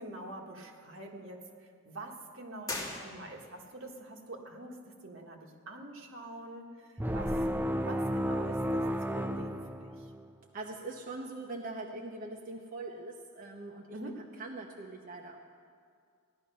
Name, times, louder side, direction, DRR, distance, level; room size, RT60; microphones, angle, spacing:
voice 1, 0.0-4.8 5.0-8.8 9.1-10.1 13.9-14.2, right 1 dB, 75° right, 1 dB, 1.6 m, -46 dB
sound 1, 2.6-3.7, left 2 dB, 20° left, 2.2 m, -40 dB
sound 2, 7.0-10.3, equal, 10° right, 0.4 m, -32 dB
voice 2, 10.5-13.9 14.4-15.4, right 2 dB, 45° right, 0 dB, 0.9 m, -42 dB
16.0 x 11.0 x 5.5 m, 2.2 s
head